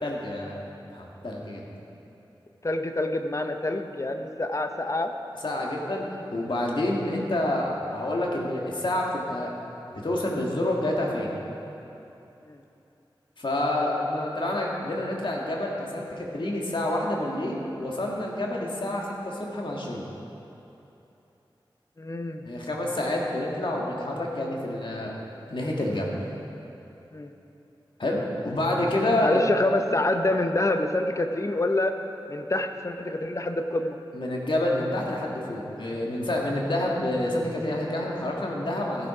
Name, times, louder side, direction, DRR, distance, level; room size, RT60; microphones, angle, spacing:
voice 1, 0.0-0.6 0.9-1.7 5.4-9.5 9.9-11.3 13.4-20.0 22.4-26.1 28.0-29.4 34.1-39.1, left 1 dB, 65° left, -2 dB, 1.8 m, -28 dB
voice 2, 2.6-5.1 12.5-12.6 22.0-22.4 27.1-27.3 29.2-32.0 32.3-34.0, left 2 dB, 35° left, 6 dB, 0.8 m, -26 dB
15.0 x 7.2 x 4.9 m, 2.9 s
wide cardioid pair, 55°, 9 cm